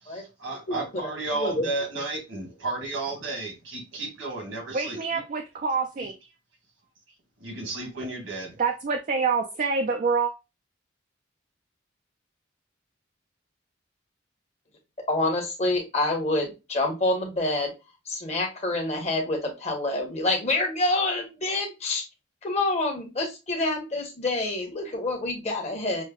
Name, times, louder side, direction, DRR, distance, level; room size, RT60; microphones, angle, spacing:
voice 1, 0.0-5.2 6.0-6.1 7.4-8.6, right 2 dB, 85° right, 1.6 m, -33 dB
voice 2, 4.7-6.1 8.6-10.3, right 5 dB, 40° right, 0.4 m, -26 dB
voice 3, 15.1-17.7 18.1-22.0 22.4-26.0, left 2 dB, 35° left, 1.0 m, -27 dB
6.3 x 2.1 x 2.3 m
head